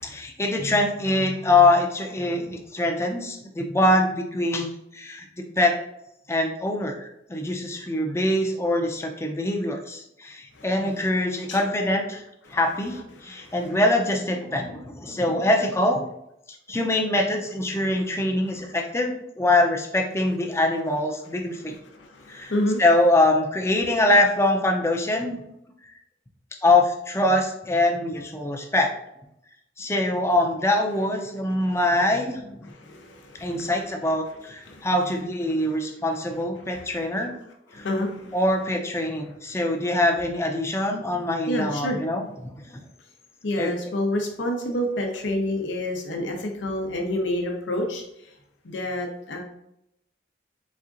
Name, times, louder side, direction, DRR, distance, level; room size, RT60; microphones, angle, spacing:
voice 1, 0.0-5.3 5.6-5.8 6.3-12.2 12.5-16.0 16.7-21.7 22.3-22.5 22.8-25.4 26.6-28.9 29.8-32.4 33.4-37.3 37.7-37.9 38.3-42.8 43.6-43.7, left 1 dB, 15° left, 3 dB, 0.5 m, -23 dB
voice 2, 10.6-10.9 11.5-11.6 12.5-12.6 13.3-13.5 21.9-22.8 31.6-31.8 32.6-33.7 34.7-34.9 37.7-38.3 41.5-42.0 43.4-48.0 48.6-49.4, left 1 dB, 85° left, 2 dB, 0.7 m, -28 dB
4.2 x 3.5 x 2.5 m, 0.80 s
head